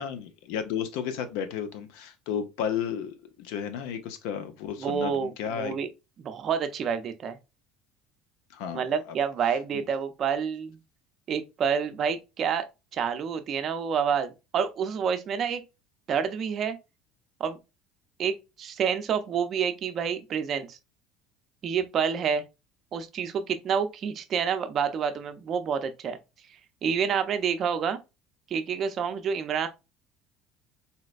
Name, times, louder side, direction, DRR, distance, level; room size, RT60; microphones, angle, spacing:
voice 1, 0.0-5.7 8.5-9.1 9.7-9.8, left 8 dB, 80° left, 0.6 m, -33 dB
voice 2, 4.8-5.9 6.2-7.4 8.7-10.8 11.3-12.7 12.9-15.6 16.1-16.8 17.4-17.6 18.2-20.8 21.6-22.4 22.9-26.2 26.8-28.0 28.5-29.7, right 7 dB, 40° right, 0.5 m, -28 dB
4.0 x 2.1 x 2.3 m
cardioid pair, 125°, 0 cm